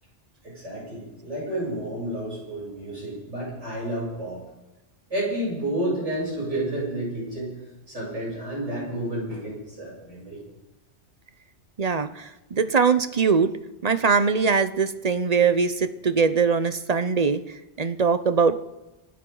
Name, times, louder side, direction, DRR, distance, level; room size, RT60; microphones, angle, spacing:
voice 1, 0.4-4.4 5.1-7.6 7.9-10.4, right 1 dB, 90° right, -6 dB, 8.2 m, -30 dB
voice 2, 11.8-13.5 13.8-18.6, right 5 dB, 40° right, 11 dB, 0.7 m, -22 dB
28.5 x 12.5 x 3.9 m, 1.0 s
omnidirectional pair, 1.2 m